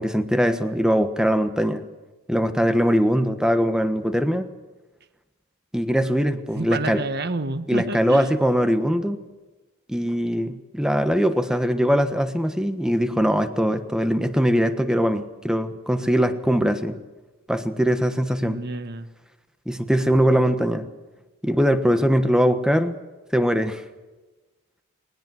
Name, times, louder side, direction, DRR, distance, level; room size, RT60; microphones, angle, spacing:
voice 1, 0.0-1.8 2.3-4.5 5.7-7.0 7.7-9.2 9.9-17.0 17.5-18.6 19.7-20.8 21.4-23.0 23.3-23.8, equal, 5° right, 9 dB, 1.3 m, -21 dB
voice 2, 6.5-8.3 18.4-19.1, right 2 dB, 50° right, 12 dB, 1.3 m, -29 dB
20.5 x 20.0 x 7.6 m, 1.2 s
head